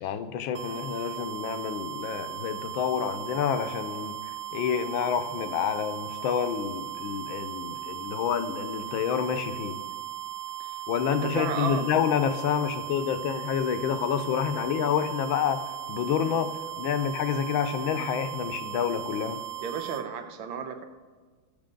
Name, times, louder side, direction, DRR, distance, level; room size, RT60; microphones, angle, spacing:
voice 1, 0.0-9.8 10.9-19.4, left 8 dB, 80° left, 9 dB, 1.5 m, -28 dB
sound 1, 0.6-20.0, right 13 dB, 65° right, 0.8 m, -37 dB
voice 2, 0.7-1.2 10.6-10.7 11.1-11.9 19.6-20.9, right 6 dB, 85° right, 7 dB, 1.5 m, -34 dB
14.0 x 6.5 x 3.8 m, 1.4 s
omnidirectional pair, 2.2 m